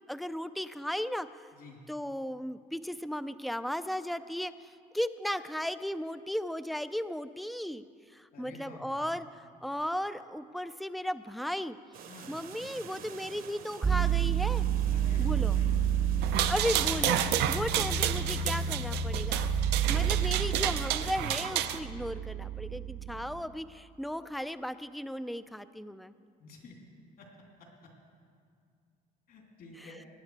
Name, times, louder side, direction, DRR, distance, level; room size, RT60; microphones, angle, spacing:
voice 1, 0.0-1.5 1.9-7.8 8.1-11.8 12.3-14.7 15.2-15.6 16.5-17.2 17.5-19.6 19.9-26.1 29.8-29.9, equal, ahead, 13 dB, 0.4 m, -35 dB
voice 2, 1.5-1.8 8.3-9.2 12.1-12.3 14.9-15.9 26.4-26.7 27.2-27.3 27.6-27.9 29.3-30.1, left 2 dB, 65° left, 0 dB, 3.1 m, -50 dB
sound 1, 11.9-17.0, right 7 dB, 60° right, 1.0 m, -49 dB
sound 2, 13.8-23.4, right 8 dB, 25° right, 0.7 m, -30 dB
sound 3, 16.2-21.8, right 12 dB, 85° right, 0.6 m, -30 dB
19.0 x 9.6 x 4.7 m, 2.2 s
cardioid pair, 110°, 17 cm